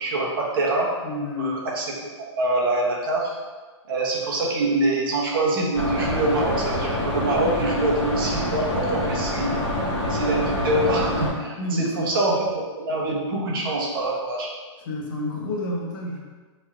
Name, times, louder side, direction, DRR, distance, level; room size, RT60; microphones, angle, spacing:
voice 1, 0.0-0.9 1.4-1.8 2.4-3.4 3.9-9.6 10.1-14.5, right 2 dB, 45° right, -2 dB, 0.8 m, -25 dB
voice 2, 1.0-1.7 11.6-12.1 14.8-16.2, left 2 dB, 40° left, -1 dB, 0.7 m, -29 dB
sound 1, 5.7-11.3, left 1 dB, 20° left, 1.0 m, -26 dB
4.2 x 3.1 x 2.4 m, 1.3 s
hypercardioid pair, 165°, 16 cm